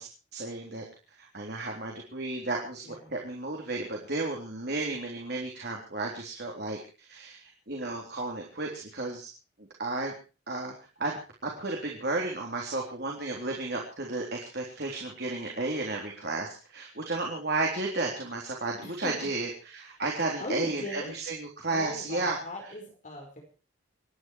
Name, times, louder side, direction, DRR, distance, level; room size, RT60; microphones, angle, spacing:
voice 1, 0.0-9.3 9.6-10.1 10.5-22.4, right 2 dB, 50° right, 0 dB, 3.6 m, -33 dB
voice 2, 18.8-19.3 20.4-21.1 21.7-23.4, left 1 dB, 35° left, 1 dB, 5.4 m, -39 dB
26.5 x 11.0 x 4.7 m, 0.35 s
head